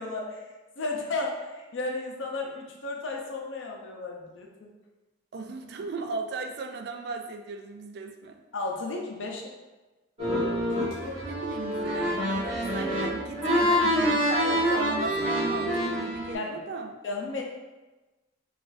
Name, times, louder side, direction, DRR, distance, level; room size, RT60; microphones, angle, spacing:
voice 1, 0.0-4.7 8.5-9.5 16.3-16.6 17.0-17.4, left 3 dB, 85° left, 0 dB, 0.6 m, -34 dB
voice 2, 5.3-8.4 11.2-16.9, right 4 dB, 60° right, 5 dB, 0.3 m, -36 dB
sound 1, 10.2-16.3, equal, 35° right, 1.4 m, -26 dB
3.8 x 2.5 x 2.5 m, 1.2 s
head